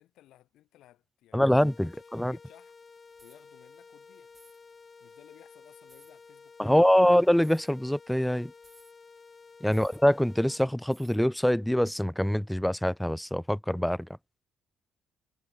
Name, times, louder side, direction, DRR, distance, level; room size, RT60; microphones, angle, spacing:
voice 1, 0.0-1.5 1.8-2.7 3.2-4.3 5.0-7.1 9.6-9.9, left 14 dB, 85° left, 4.7 m, -59 dB
voice 2, 1.3-2.4 6.6-8.5 9.6-14.1, equal, 5° left, 0.3 m, -24 dB
sound 1, 1.6-10.6, left 4 dB, 35° left, 7.5 m, -53 dB
sound 2, 3.1-3.4 4.3-4.6 5.9-6.1 7.4-7.7 8.6-8.9 9.7-10.0 10.9-11.2, right 2 dB, 15° right, 3.4 m, -59 dB
cardioid pair, 90°, 0 cm